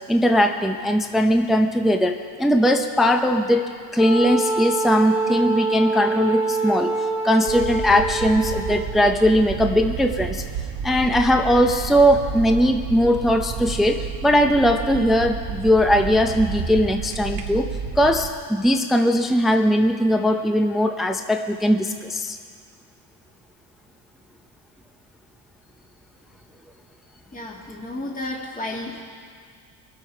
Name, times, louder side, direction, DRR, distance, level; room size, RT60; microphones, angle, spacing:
voice 1, 0.1-6.9 7.2-10.4 10.8-17.7 18.0-22.4, equal, ahead, 5 dB, 0.6 m, -19 dB
Wind instrument woodwind instrument, 4.0-9.1, right 3 dB, 60° left, 1.6 m, -25 dB
sound 1, 7.5-18.3, right 6 dB, 80° right, 1.1 m, -31 dB
voice 2, 27.3-29.0, left 1 dB, 20° left, -2 dB, 1.8 m, -32 dB
23.5 x 8.2 x 4.6 m, 2.1 s
cardioid pair, 95°, 44 cm